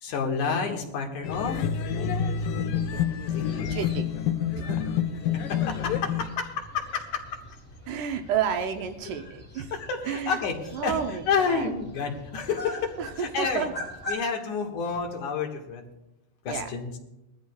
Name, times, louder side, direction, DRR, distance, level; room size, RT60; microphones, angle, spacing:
voice 1, 0.0-1.7 3.3-3.8 5.5-7.4 9.7-10.6 10.8-11.0 11.3-13.7 14.1-15.9 16.4-17.0, left 5 dB, 65° left, 1 dB, 3.0 m, -30 dB
sound 1, 1.2-6.3, left 8 dB, 85° left, 2.5 m, -28 dB
sound 2, 1.9-14.1, equal, 5° left, 4.6 m, -43 dB
voice 2, 3.7-4.2 4.6-4.8 7.9-9.7 10.0-10.4 10.7-11.7 13.0-13.7 16.5-16.7, right 8 dB, 75° right, 6 dB, 2.2 m, -31 dB
20.5 x 14.0 x 2.3 m, 0.90 s
omnidirectional pair, 3.8 m